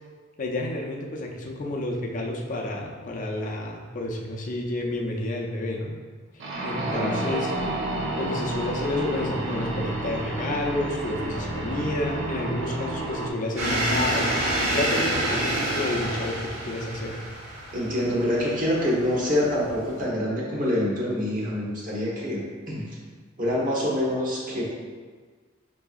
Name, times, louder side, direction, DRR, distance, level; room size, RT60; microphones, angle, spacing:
voice 1, 0.4-6.0 6.6-7.5 8.2-14.3 14.7-17.2, left 1 dB, 40° left, 0 dB, 0.5 m, -30 dB
sound 1, 6.4-13.3, right 2 dB, 65° right, 0.6 m, -30 dB
sound 2, 13.6-20.0, right 1 dB, 90° right, 1.3 m, -28 dB
voice 2, 17.7-22.8 23.4-24.6, left 1 dB, 45° right, -4 dB, 1.0 m, -26 dB
5.6 x 2.7 x 2.4 m, 1.5 s
head